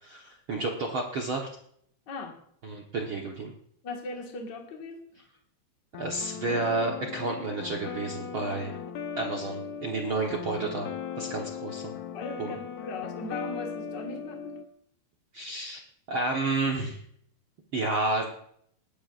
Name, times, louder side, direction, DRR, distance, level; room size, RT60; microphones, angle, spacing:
voice 1, 0.0-1.5 2.6-3.5 5.9-8.8 9.2-10.9 11.2-11.9 12.4-12.6 15.3-15.8 16.1-17.0 17.7-18.4, right 3 dB, 65° right, 0 dB, 1.3 m, -30 dB
voice 2, 2.1-2.4 3.8-5.2 12.1-14.6, left 3 dB, 40° left, 1 dB, 1.8 m, -39 dB
sound 1, 5.9-14.7, left 7 dB, 70° left, 1.8 m, -38 dB
28.0 x 11.0 x 2.5 m, 0.68 s
omnidirectional pair, 4.3 m